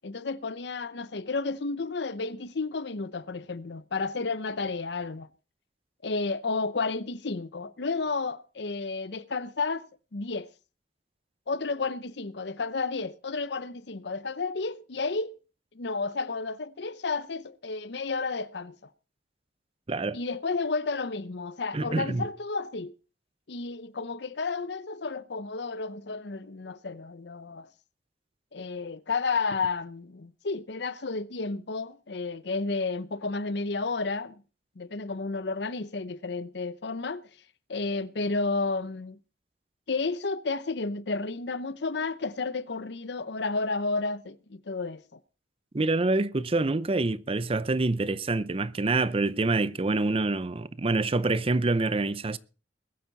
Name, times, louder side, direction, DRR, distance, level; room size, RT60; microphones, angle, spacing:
voice 1, 0.0-5.3 6.0-10.5 11.5-15.3 15.7-18.7 20.1-22.9 23.5-27.7 28.5-34.4 34.8-37.2 37.7-39.2 39.9-45.0, left 3 dB, 65° left, 0.7 m, -32 dB
voice 2, 21.7-22.3 45.7-52.4, right 2 dB, 30° right, 0.6 m, -26 dB
21.0 x 9.3 x 4.0 m
head